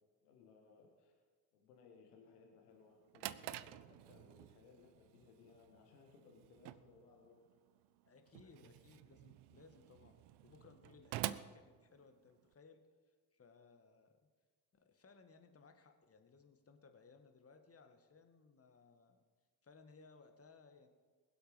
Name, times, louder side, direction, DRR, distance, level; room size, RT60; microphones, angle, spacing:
voice 1, 0.2-1.1 1.5-7.4 8.4-8.7, left 5 dB, 80° left, 1 dB, 1.7 m, -63 dB
Drawer open or close, 2.8-12.5, right 15 dB, 60° right, 0.6 m, -49 dB
voice 2, 8.0-12.8 13.3-14.1 14.7-19.2 19.6-20.9, left 4 dB, 30° left, 6 dB, 1.8 m, -63 dB
21.5 x 8.0 x 5.1 m, 1.5 s
figure-of-eight pair, 45°, 46 cm